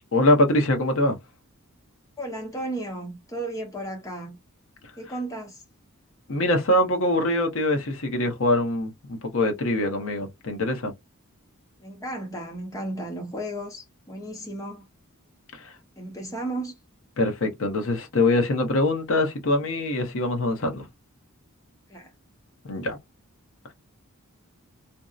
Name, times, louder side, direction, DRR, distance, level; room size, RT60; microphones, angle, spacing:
voice 1, 0.1-1.2 6.3-10.9 15.6-15.7 17.2-20.8 22.6-23.0, left 1 dB, 65° left, 0.8 m, -23 dB
voice 2, 2.2-4.3 5.0-5.6 11.8-14.9 16.0-16.7 21.9-22.1, right 1 dB, 15° left, 0.7 m, -34 dB
2.6 x 2.0 x 2.3 m
head